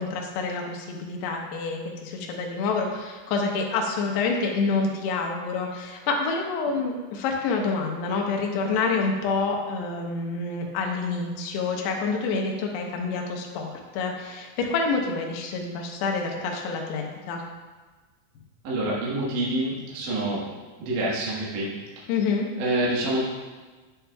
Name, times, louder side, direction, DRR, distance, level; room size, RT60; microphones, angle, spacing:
voice 1, 0.0-17.4 22.1-22.5, left 4 dB, 75° left, 1 dB, 2.9 m, -27 dB
voice 2, 18.6-20.5 20.8-22.1 22.6-23.2, right 1 dB, 60° right, -6 dB, 2.2 m, -27 dB
9.8 x 8.7 x 2.3 m, 1.3 s
omnidirectional pair, 5.3 m